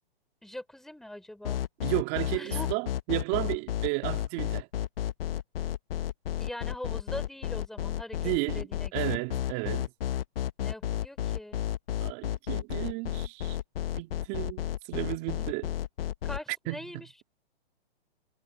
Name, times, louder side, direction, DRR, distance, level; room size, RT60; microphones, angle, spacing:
voice 1, 0.4-1.6 2.3-2.7 6.4-9.2 10.6-11.6 15.4-15.5 16.2-17.2, left 1 dB, ahead, 3.5 m, -42 dB
sound 1, 1.4-16.4, left 11 dB, 65° left, 0.9 m, -32 dB
voice 2, 1.8-4.7 8.2-8.7 8.9-9.9 12.0-13.6 14.0-15.7 16.7-17.0, right 25 dB, 30° right, 2.2 m, -33 dB
hypercardioid pair, 145°, 31 cm